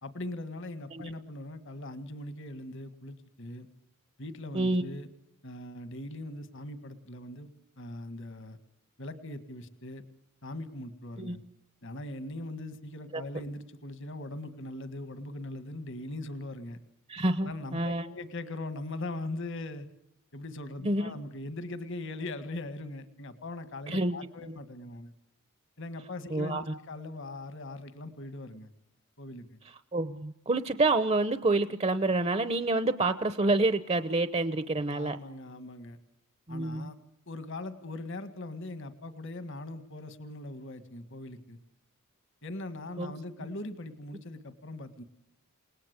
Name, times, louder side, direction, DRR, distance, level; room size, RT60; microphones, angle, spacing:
voice 1, 0.0-3.7 4.2-5.1 5.4-7.5 7.8-8.6 9.0-10.0 10.4-11.4 11.8-16.8 17.4-19.9 20.3-25.1 25.8-28.7 29.2-29.6 34.9-36.0 36.5-37.0 37.3-41.6 42.4-45.0, left 2 dB, 60° left, 11 dB, 1.8 m, -40 dB
voice 2, 17.1-18.1 20.8-21.2 23.9-24.2 24.5-24.6 26.3-26.7 29.9-35.2 36.5-36.9 43.0-43.1, right 2 dB, 30° right, 12 dB, 0.9 m, -28 dB
29.0 x 19.0 x 8.2 m, 0.75 s
head